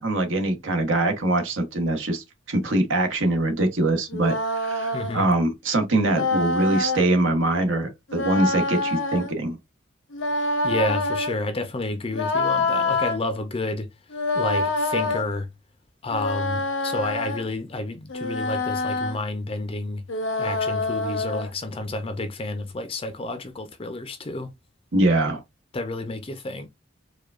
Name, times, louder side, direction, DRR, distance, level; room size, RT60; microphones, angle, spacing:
voice 1, 0.0-9.6 24.9-25.4, right 2 dB, 75° right, 1.1 m, -23 dB
sound 1, 4.1-5.2 6.1-7.1 8.1-9.3 10.1-11.3 12.1-13.2 14.1-15.2 16.1-17.5 18.1-19.2 20.1-21.5, left 2 dB, 75° left, 0.7 m, -26 dB
voice 2, 4.9-5.3 10.3-13.9 14.3-15.5 16.0-20.0 20.4-24.5 25.7-26.7, left 2 dB, 30° left, 0.5 m, -30 dB
4.7 x 2.3 x 2.4 m
head